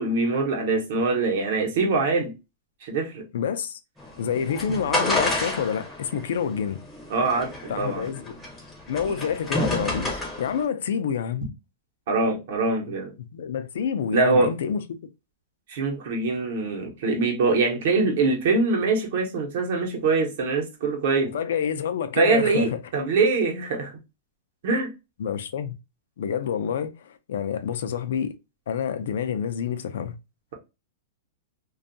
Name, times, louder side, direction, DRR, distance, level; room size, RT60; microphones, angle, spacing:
voice 1, 0.0-2.3 2.8-3.2 7.1-8.1 12.1-13.1 14.1-14.5 15.7-21.3 22.1-23.9 24.6-24.9, right 3 dB, 55° right, 0.8 m, -23 dB
voice 2, 3.3-3.8 4.2-6.8 7.7-8.3 8.9-11.5 13.3-15.0 21.3-22.7 25.2-25.7 26.2-26.9 27.3-28.3 28.7-30.1, left 7 dB, 70° left, 0.4 m, -28 dB
sound 1, 4.0-10.6, left 1 dB, 5° left, 0.6 m, -30 dB
2.6 x 2.3 x 2.5 m
supercardioid pair, 170°, 0 cm